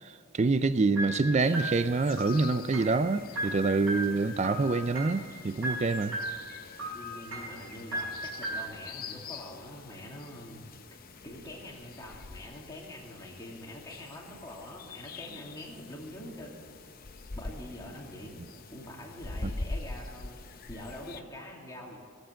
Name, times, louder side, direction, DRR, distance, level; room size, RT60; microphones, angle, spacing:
voice 1, 0.0-6.2, right 3 dB, 30° right, 0.4 m, -26 dB
sound 1, 1.0-8.7, right 1 dB, 80° right, 4.9 m, -37 dB
sound 2, 1.4-21.2, left 3 dB, 45° left, 0.7 m, -45 dB
voice 2, 6.9-10.6 11.2-16.6 17.3-20.4 20.7-22.0, left 1 dB, 15° left, 2.5 m, -45 dB
19.5 x 8.0 x 7.6 m
head